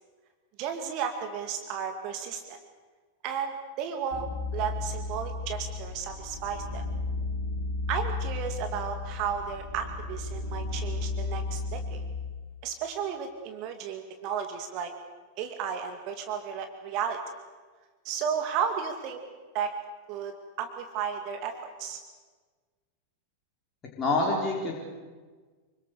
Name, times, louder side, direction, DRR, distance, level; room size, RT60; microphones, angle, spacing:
voice 1, 0.6-2.6 3.2-4.3 4.5-6.8 7.9-12.0 12.6-14.9 15.4-17.2 18.0-19.2 19.5-19.7 20.1-20.3 20.6-22.0, right 7 dB, 40° right, 6 dB, 2.3 m, -33 dB
sound 1, 4.1-12.2, left 3 dB, 60° left, 4.0 m, -34 dB
voice 2, 24.0-24.8, left 2 dB, 25° left, -2 dB, 5.0 m, -26 dB
27.0 x 24.5 x 6.8 m, 1.4 s
figure-of-eight pair, 90°, 0 cm